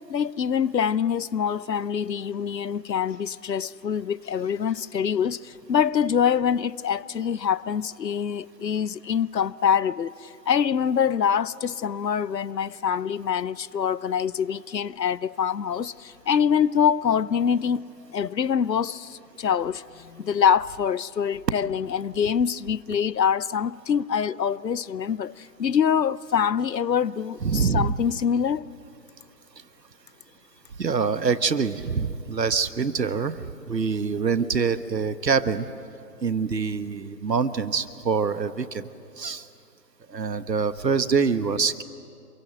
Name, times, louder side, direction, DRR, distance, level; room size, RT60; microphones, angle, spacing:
voice 1, 0.1-17.9 18.1-28.6, left 7 dB, 90° left, 0.8 m, -25 dB
voice 2, 27.4-27.9 30.8-35.7 36.2-38.8 39.2-39.5 40.1-41.8, right 5 dB, 85° right, 1.4 m, -25 dB
27.5 x 23.0 x 7.8 m
figure-of-eight pair, 155°, 48 cm